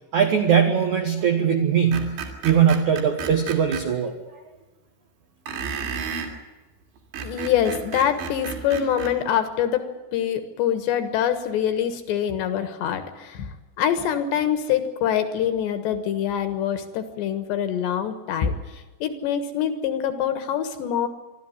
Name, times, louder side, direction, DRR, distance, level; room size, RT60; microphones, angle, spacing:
voice 1, 0.1-4.1, right 8 dB, 90° right, 5 dB, 1.6 m, -20 dB
Screech, 1.9-3.8 5.5-6.3 7.0-9.1, right 6 dB, 60° right, 4.8 m, -32 dB
voice 2, 7.2-21.1, left 9 dB, 65° left, 9 dB, 3.2 m, -25 dB
25.5 x 13.0 x 9.6 m, 1.2 s
omnidirectional pair, 6.0 m